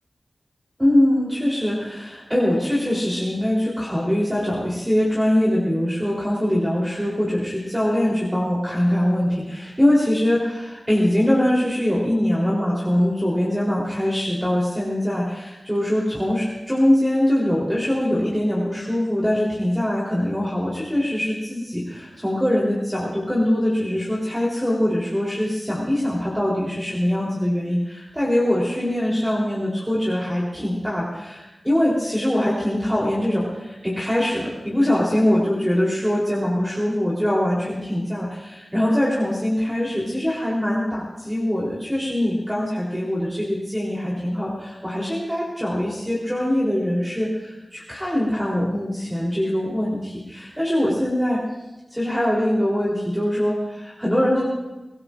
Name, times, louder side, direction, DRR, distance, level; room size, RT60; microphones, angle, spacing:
voice 1, 0.8-51.4 51.9-54.4, left 1 dB, 10° right, -6 dB, 3.7 m, -22 dB
23.5 x 18.0 x 2.6 m, 1.0 s
wide cardioid pair, 70°, 0 cm